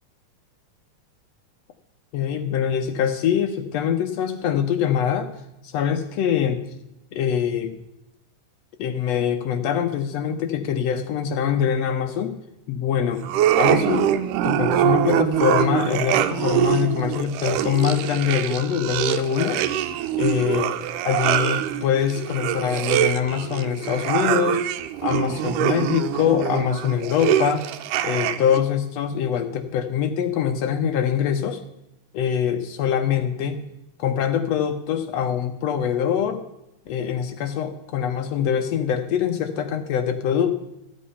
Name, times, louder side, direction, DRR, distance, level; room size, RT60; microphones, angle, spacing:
voice 1, 2.1-5.3 5.6-6.6 7.1-7.7 8.8-12.3 12.7-13.2 13.6-14.1 14.4-19.6 20.1-20.7 21.0-24.6 25.0-27.7 28.0-31.6 32.1-33.6 34.0-36.4 36.9-40.6, left 8 dB, 75° left, 7 dB, 1.6 m, -23 dB
sound 1, 13.2-28.6, right 12 dB, 85° right, 2.2 m, -24 dB
13.5 x 8.5 x 5.5 m, 0.90 s
omnidirectional pair, 3.6 m